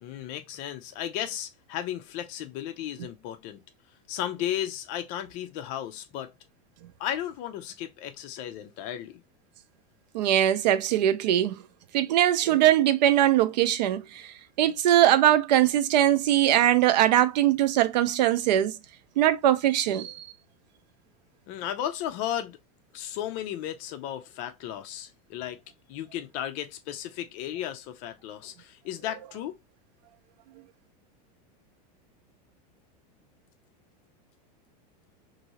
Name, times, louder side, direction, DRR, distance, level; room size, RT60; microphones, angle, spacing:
voice 1, 0.0-3.6 4.1-6.3 7.0-9.2 21.5-22.6 22.9-25.6 25.9-29.6, left 11 dB, 35° left, 0.5 m, -34 dB
voice 2, 10.1-11.6 11.9-18.8 19.2-20.3, right 12 dB, 80° right, 0.5 m, -21 dB
2.9 x 2.6 x 2.7 m
supercardioid pair, 165°, 21 cm